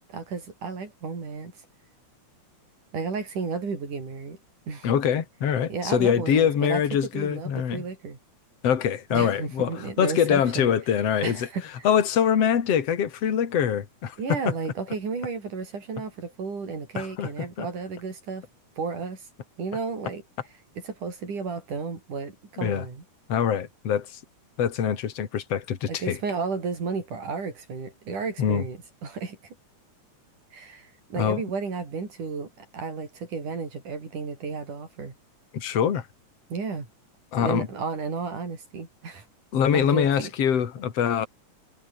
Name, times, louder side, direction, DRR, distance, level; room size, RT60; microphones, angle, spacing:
voice 1, 0.0-1.5 2.9-4.4 4.7-4.9 5.7-6.8 7.1-8.2 9.1-10.7 11.2-11.9 14.2-18.5 18.8-19.3 19.6-20.2 20.8-23.0 25.9-29.5 30.5-35.1 36.5-36.9 37.4-39.3 39.7-40.3, right 5 dB, 90° right, 6.9 m, -33 dB
voice 2, 4.8-7.8 8.6-11.5 11.8-14.5 17.0-17.3 17.6-17.7 22.6-22.8 23.3-24.2 24.6-26.2 28.4-28.6 31.2-31.4 35.5-36.1 37.3-37.7 39.5-41.3, left 8 dB, 55° left, 3.3 m, -24 dB
omnidirectional pair, 3.5 m